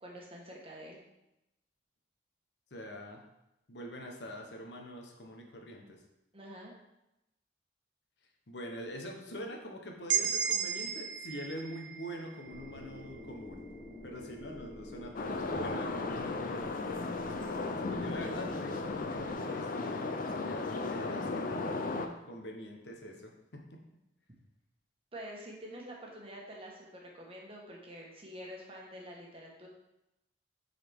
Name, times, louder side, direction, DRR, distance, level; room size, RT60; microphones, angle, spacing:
voice 1, 0.0-1.0 6.3-6.7 25.1-29.7, equal, 30° right, -2 dB, 1.2 m, -47 dB
voice 2, 2.7-3.2 3.7-6.0 8.5-13.7 14.0-21.8 22.2-23.6, equal, 65° left, 1 dB, 0.9 m, -44 dB
sound 1, 10.1-13.9, right 8 dB, 75° right, 0.5 m, -35 dB
sound 2, 12.5-19.3, left 1 dB, 35° left, 1.1 m, -49 dB
sound 3, 15.1-22.1, left 3 dB, 50° left, 0.5 m, -35 dB
7.2 x 4.0 x 3.5 m, 0.90 s
head